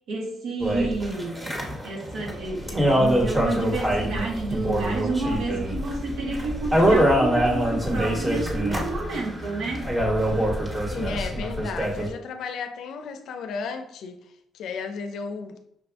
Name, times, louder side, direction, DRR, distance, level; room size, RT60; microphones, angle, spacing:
voice 1, 0.1-1.5 1.8-9.9, right 3 dB, 80° right, 1.3 m, -30 dB
Do a Kickflip, 0.6-12.1, equal, 20° right, 1.3 m, -24 dB
voice 2, 10.9-14.2 14.5-15.6, left 5 dB, 75° left, 0.5 m, -34 dB
5.8 x 2.5 x 3.4 m
cardioid pair, 90°, 0 cm